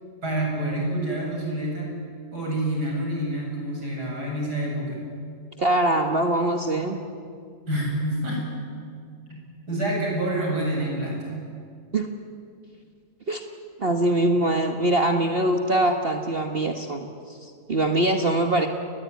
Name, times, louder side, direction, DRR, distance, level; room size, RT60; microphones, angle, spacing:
voice 1, 0.2-1.9 2.3-5.0 7.7-8.4 9.3-9.4 9.7-11.3, right 1 dB, 80° right, -2 dB, 8.5 m, -27 dB
voice 2, 5.6-7.0 11.9-12.1 13.3-13.4 13.8-18.7, right 1 dB, 35° right, 4 dB, 1.6 m, -23 dB
29.5 x 21.0 x 9.5 m, 2.3 s
omnidirectional pair, 1.7 m